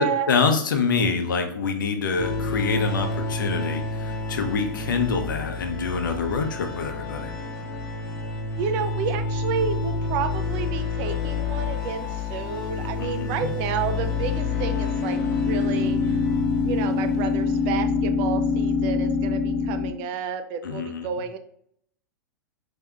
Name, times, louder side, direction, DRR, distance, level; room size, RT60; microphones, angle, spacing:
voice 1, 0.0-7.3 12.8-13.5 20.6-21.1, left 4 dB, 75° left, 5 dB, 0.8 m, -26 dB
sound 1, 2.2-18.1, left 3 dB, 40° left, 1.1 m, -30 dB
sound 2, 7.2-7.7 13.8-19.9, left 4 dB, ahead, 0.6 m, -25 dB
voice 2, 8.6-16.2 16.6-21.4, right 6 dB, 45° right, 9 dB, 0.5 m, -30 dB
5.6 x 2.9 x 2.4 m, 0.68 s
hypercardioid pair, 110°, 11 cm